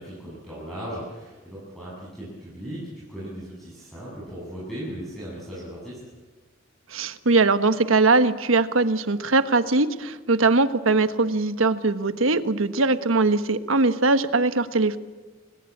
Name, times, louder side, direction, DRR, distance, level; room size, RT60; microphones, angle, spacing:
voice 1, 0.0-6.0, equal, ahead, -8 dB, 7.8 m, -37 dB
voice 2, 6.9-15.0, right 3 dB, 85° right, 11 dB, 1.3 m, -21 dB
29.5 x 20.0 x 8.7 m, 1.3 s
head